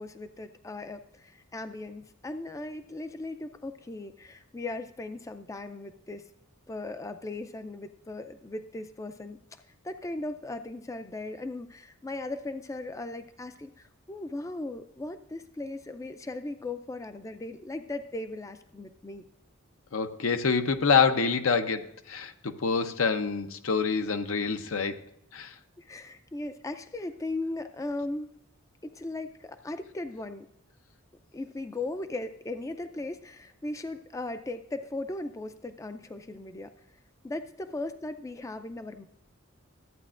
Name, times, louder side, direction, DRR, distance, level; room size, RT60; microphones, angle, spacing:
voice 1, 0.0-6.3 6.7-9.4 9.8-19.2 25.8-28.3 28.8-30.5 31.3-36.7 37.2-39.0, left 2 dB, 15° left, 9 dB, 0.4 m, -37 dB
voice 2, 19.9-25.0 25.3-25.5, left 5 dB, 75° left, 8 dB, 0.7 m, -26 dB
13.5 x 8.8 x 2.5 m, 0.73 s
head